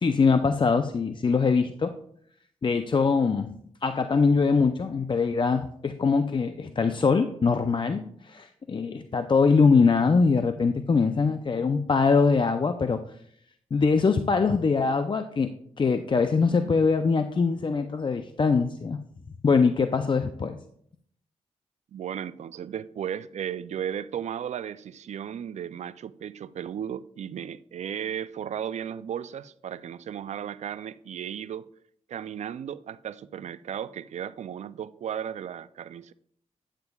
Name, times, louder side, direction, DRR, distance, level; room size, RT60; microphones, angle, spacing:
voice 1, 0.0-1.9 2.6-3.5 3.8-13.0 13.7-15.5 15.8-19.0 19.4-20.6, left 4 dB, 40° left, 0.5 m, -23 dB
voice 2, 21.9-31.7 32.1-36.1, right 9 dB, 70° right, 0.4 m, -35 dB
9.3 x 8.9 x 2.3 m
cardioid pair, 60°, 13 cm